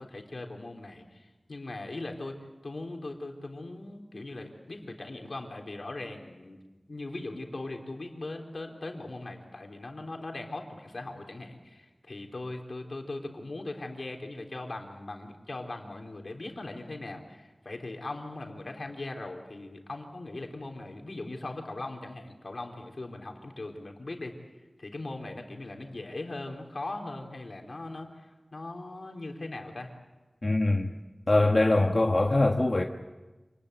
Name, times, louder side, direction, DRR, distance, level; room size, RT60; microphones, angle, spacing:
voice 1, 0.0-6.6 6.9-24.4 24.8-29.9, left 2 dB, 75° left, 3.8 m, -40 dB
voice 2, 30.4-30.9 31.3-32.8, left 2 dB, 50° left, 1.4 m, -23 dB
28.0 x 20.0 x 8.4 m
wide cardioid pair, 55°, 0 cm